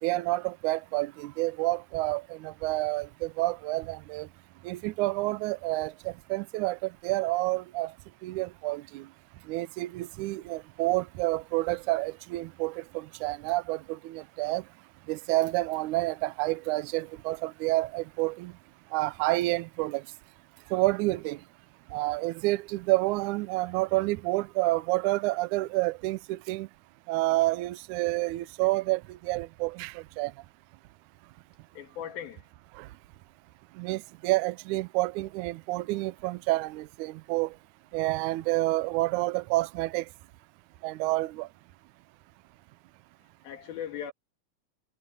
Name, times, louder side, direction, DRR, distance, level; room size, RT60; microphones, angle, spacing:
voice 1, 0.0-4.3 4.6-8.0 8.2-9.1 9.4-14.7 15.1-18.6 18.9-20.1 20.7-21.4 21.9-26.7 27.1-30.3 32.7-32.9 33.8-37.6 37.9-40.1 40.8-41.5, right 19 dB, 80° right, 1.8 m, -29 dB
voice 2, 31.8-32.5 43.4-44.1, left 9 dB, 90° left, 3.9 m, -38 dB
omnidirectional pair, 4.1 m